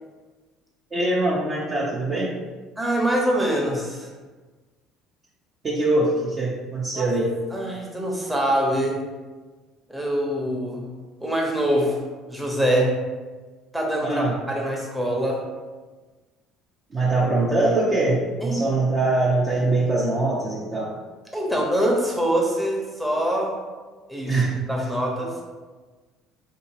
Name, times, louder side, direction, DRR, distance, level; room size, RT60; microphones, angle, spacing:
voice 1, 0.9-2.3 5.6-7.3 14.0-14.4 16.9-21.0 24.3-24.6, right 2 dB, 35° right, -6 dB, 0.7 m, -22 dB
voice 2, 2.8-4.1 6.9-7.1 7.5-9.0 9.9-10.9 11.2-12.0 12.3-12.9 13.7-15.4 18.4-18.6 21.3-23.6 24.1-25.4, right 1 dB, 10° right, -1 dB, 0.9 m, -24 dB
3.8 x 2.8 x 2.8 m, 1.3 s
supercardioid pair, 90°, 0 cm